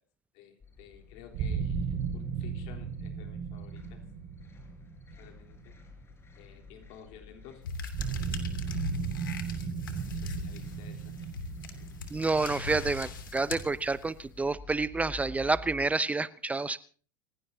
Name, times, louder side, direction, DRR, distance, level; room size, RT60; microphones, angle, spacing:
voice 1, 0.3-4.0 5.2-5.7 6.4-7.6 10.1-11.1, left 8 dB, 55° left, 3 dB, 3.7 m, -53 dB
sound 1, 0.6-15.9, left 3 dB, 25° left, 5.2 m, -51 dB
sound 2, 1.3-6.3 7.9-13.6, right 6 dB, 45° right, 5.6 m, -36 dB
sound 3, 7.6-14.3, left 4 dB, 80° left, 2.9 m, -40 dB
voice 2, 12.1-16.8, right 3 dB, 15° right, 16 dB, 0.7 m, -29 dB
29.0 x 16.5 x 2.8 m, 0.42 s
hypercardioid pair, 85°, 11 cm